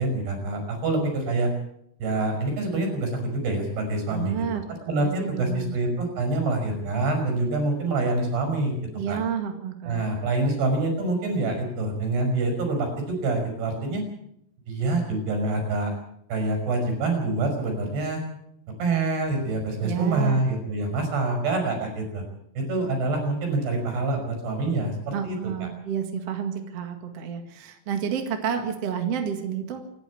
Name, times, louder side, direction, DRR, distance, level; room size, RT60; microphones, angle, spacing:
voice 1, 0.0-1.5 2.0-8.7 9.1-9.2 9.8-14.0 14.7-15.9 16.3-18.2 18.8-22.2 22.6-25.7, right 2 dB, 75° right, 4 dB, 7.8 m, -26 dB
voice 2, 4.1-4.6 5.0-5.7 9.0-10.0 19.8-20.4 25.1-29.8, right 8 dB, 45° right, 5 dB, 2.5 m, -30 dB
26.5 x 11.5 x 8.5 m, 0.75 s
omnidirectional pair, 4.7 m